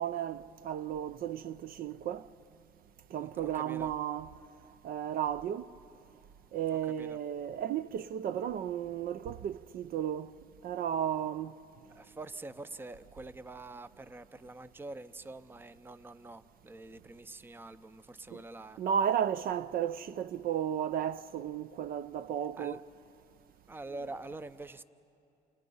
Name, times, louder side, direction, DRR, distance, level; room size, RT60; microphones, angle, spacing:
voice 1, 0.0-2.2 3.1-4.3 4.8-5.7 6.5-10.3 10.6-11.6 18.8-22.8, right 9 dB, 60° right, 0.5 m, -33 dB
voice 2, 3.1-3.9 6.8-7.2 11.9-18.8 22.6-22.8 23.7-24.8, right 2 dB, 15° right, 0.6 m, -45 dB
29.0 x 28.5 x 5.5 m
cardioid pair, 110°, 17 cm